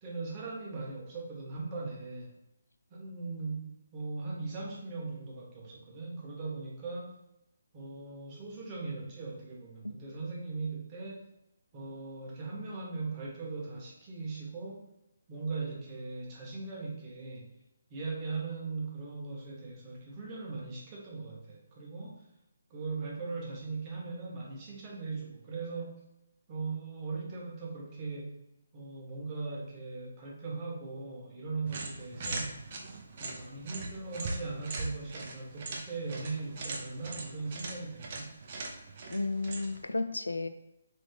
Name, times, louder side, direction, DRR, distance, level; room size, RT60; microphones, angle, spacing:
voice 1, 0.0-2.3 2.9-7.1 7.7-11.2 11.7-14.8 15.3-17.5 17.9-22.2 22.7-26.0 26.5-28.4 28.7-32.5 33.2-38.3, right 3 dB, 25° right, -3 dB, 1.2 m, -39 dB
sound 1, 31.7-39.9, right 3 dB, 40° right, 0.7 m, -41 dB
voice 2, 39.1-40.5, left 2 dB, 80° left, 8 dB, 0.4 m, -33 dB
3.7 x 3.4 x 3.4 m, 0.86 s
figure-of-eight pair, 145°, 0 cm